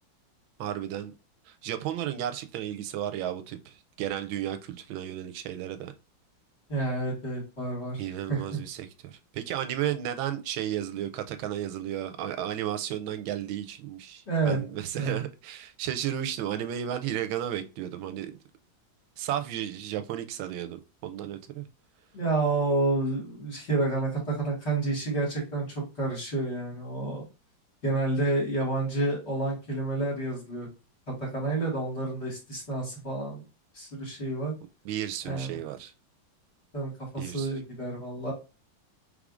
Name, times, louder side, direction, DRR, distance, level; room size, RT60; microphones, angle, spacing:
voice 1, 0.6-1.1 1.5-5.9 8.0-18.4 19.2-21.7 34.8-35.9 37.2-37.5, right 11 dB, 90° right, 1.4 m, -33 dB
voice 2, 6.7-8.6 14.3-14.6 14.9-15.2 22.1-27.2 27.8-30.7 31.1-33.4 33.7-34.5 35.2-35.6 36.7-38.3, right 2 dB, 35° left, 2.0 m, -29 dB
4.9 x 3.6 x 2.4 m
omnidirectional pair, 2.1 m